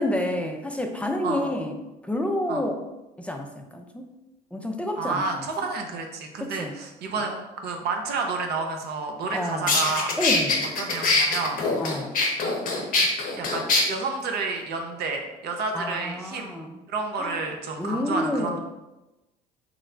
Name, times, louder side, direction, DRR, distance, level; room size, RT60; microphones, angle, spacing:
voice 1, 0.0-1.8 2.0-2.8 3.2-4.1 4.5-5.5 6.4-6.8 9.3-9.8 10.2-10.7 11.8-12.2 15.7-16.8 17.2-17.4 17.8-18.6, left 1 dB, 5° left, 3 dB, 0.4 m, -29 dB
voice 2, 5.0-10.1 10.8-11.9 12.4-12.5 13.4-16.5 16.9-18.6, right 3 dB, 55° right, 3 dB, 0.7 m, -30 dB
sound 1, 9.2-9.3 9.7-13.8, left 3 dB, 45° left, 0.8 m, -23 dB
3.0 x 2.1 x 3.6 m, 1.0 s
hypercardioid pair, 70°, 20 cm